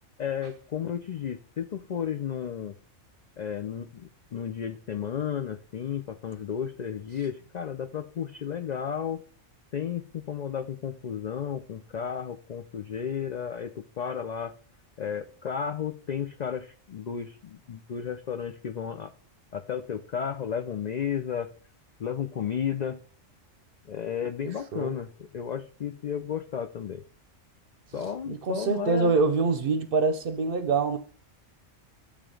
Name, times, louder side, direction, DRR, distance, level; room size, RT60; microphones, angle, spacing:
voice 1, 0.2-2.7 3.4-9.2 9.7-14.5 15.0-19.1 19.5-21.5 22.0-23.0 23.9-27.0 27.9-29.2, left 8 dB, 85° left, 0.3 m, -33 dB
voice 2, 28.3-31.0, right 4 dB, 55° right, 0.7 m, -25 dB
7.4 x 3.4 x 5.0 m
omnidirectional pair, 1.3 m